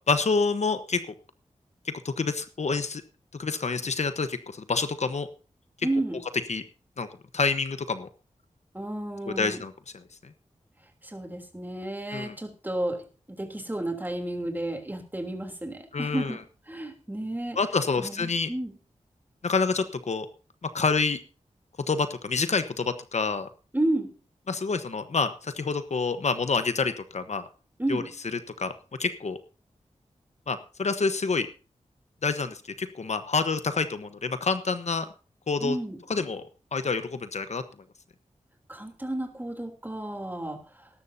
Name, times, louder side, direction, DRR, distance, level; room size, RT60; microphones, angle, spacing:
voice 1, 0.1-1.0 1.8-3.0 3.4-5.3 6.5-6.6 7.0-7.1 7.3-8.1 9.3-9.7 12.1-12.3 15.9-16.3 17.6-18.5 19.4-20.3 20.6-21.2 21.9-23.5 24.5-27.4 27.9-28.0 28.6-28.7 29.0-29.4 30.5-31.5 32.2-35.1 35.5-35.8 36.1-36.4 36.7-37.6, left 4 dB, 65° left, 10 dB, 1.1 m, -27 dB
voice 2, 5.8-6.2 8.7-9.6 11.0-16.4 16.7-17.6 18.0-18.7 23.7-24.2 27.8-28.2 35.6-36.0 38.7-40.9, right 1 dB, 15° right, 4 dB, 3.2 m, -32 dB
20.0 x 11.5 x 2.8 m, 0.36 s
wide cardioid pair, 80°, 13 cm